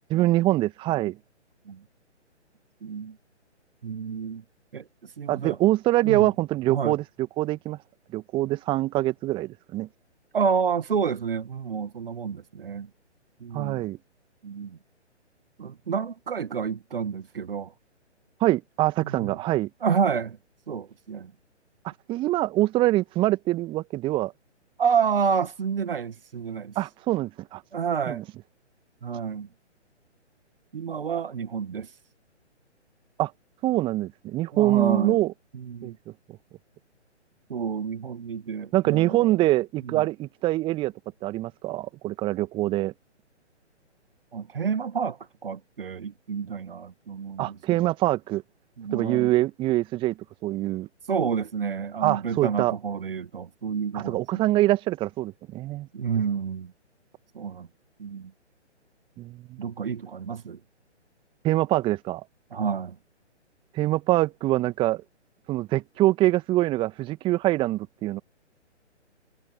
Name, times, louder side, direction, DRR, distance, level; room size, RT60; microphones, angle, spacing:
voice 1, 0.1-1.2 5.3-7.0 7.4-7.8 8.1-9.9 13.5-14.0 18.4-19.7 22.1-24.3 26.8-27.6 28.1-28.2 33.2-33.3 33.6-35.3 35.8-35.9 38.7-40.9 41.2-42.9 47.4-48.4 48.9-50.1 50.4-50.9 52.0-52.7 53.9-55.9 59.2-59.6 61.4-62.2 63.7-65.0 65.5-68.2, right 16 dB, 15° right, 1.9 m, -24 dB
voice 2, 2.8-3.2 3.8-4.4 4.7-5.6 6.0-6.3 6.7-7.0 10.3-12.9 13.4-13.9 14.4-14.8 15.6-17.7 19.0-19.4 19.8-20.4 20.7-21.3 24.8-26.7 27.7-28.2 29.0-29.5 30.7-31.9 34.5-35.2 35.5-36.0 37.5-39.4 39.8-40.1 44.3-47.9 48.8-49.3 51.1-54.4 55.9-56.7 57.3-57.7 58.0-58.3 59.6-60.6 62.5-63.0, right 6 dB, 50° right, 1.7 m, -29 dB
figure-of-eight pair, 135°, 36 cm